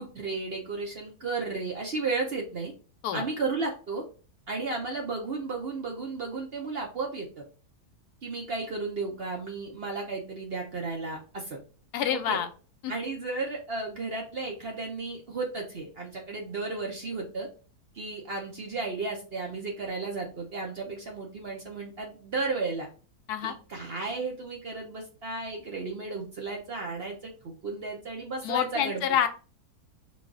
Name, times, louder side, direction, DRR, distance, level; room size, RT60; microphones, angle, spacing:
voice 1, 0.0-2.7 3.1-4.0 4.5-7.4 8.2-11.6 12.3-12.4 12.9-17.5 17.9-22.9 23.4-27.3 27.6-29.0, right 3 dB, 50° right, 1 dB, 0.8 m, -34 dB
voice 2, 11.9-12.5 12.8-12.9 23.3-23.6 28.4-29.3, left 9 dB, 80° left, 9 dB, 1.1 m, -27 dB
3.9 x 2.4 x 3.7 m, 0.35 s
omnidirectional pair, 1.7 m